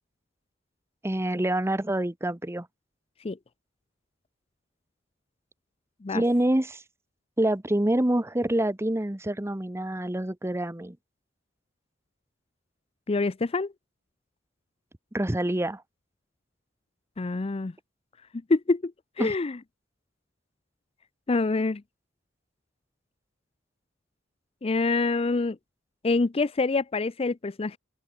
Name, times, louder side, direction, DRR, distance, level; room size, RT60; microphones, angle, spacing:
voice 1, 1.0-2.7 6.1-6.8 7.4-11.0 15.1-15.8 19.2-19.3, right 1 dB, 15° right, 1.0 m, -26 dB
voice 2, 13.1-13.7 17.2-17.7 18.5-18.9 19.2-19.6 21.3-21.8 24.6-25.6 26.0-27.8, left 3 dB, 30° left, 0.5 m, -26 dB
open air
head